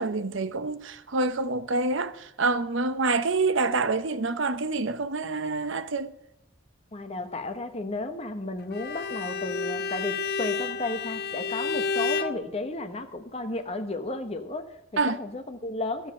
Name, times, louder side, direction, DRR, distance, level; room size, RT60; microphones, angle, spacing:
voice 1, 0.0-6.1 15.0-15.2, right 3 dB, 65° right, 0.8 m, -27 dB
voice 2, 6.9-16.1, left 2 dB, 30° left, 1.1 m, -33 dB
Bowed string instrument, 8.7-12.4, left 5 dB, 55° left, 0.6 m, -30 dB
13.5 x 7.2 x 7.5 m
head